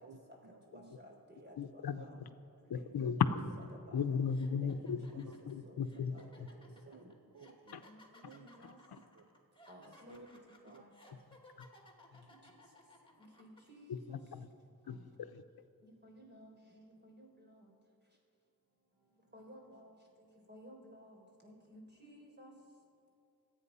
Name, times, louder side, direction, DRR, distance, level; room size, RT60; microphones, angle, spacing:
voice 1, 0.0-0.9 1.9-2.2 2.7-2.9 4.5-4.7 5.1-6.2 6.8-7.9 8.2-8.5 9.1-9.3 9.8-10.3 10.7-10.8 11.1-11.2, right 6 dB, 55° right, 6 dB, 0.9 m, -57 dB
voice 2, 0.7-2.0 2.6-3.1 3.9-4.2 4.6-4.8 5.1-5.2 5.7-5.8 6.1-7.1 7.8-8.8 9.7-10.4 10.6-10.9 13.4-14.2 14.9-15.1 15.8-17.7 19.3-19.9 20.5-22.5, equal, 30° right, 0 dB, 4.3 m, -56 dB
voice 3, 1.6-2.0 2.7-3.4 3.9-6.5 7.7-7.8 8.6-9.0 11.6-11.7 12.1-12.2 13.9-14.5 14.9-15.0 15.3-15.4, left 6 dB, 90° left, 10 dB, 0.8 m, -36 dB
sound 1, 3.6-3.8 4.3-13.6, left 1 dB, 15° left, 2.6 m, -61 dB
26.0 x 9.1 x 5.6 m, 2.6 s
wide cardioid pair, 75°, 36 cm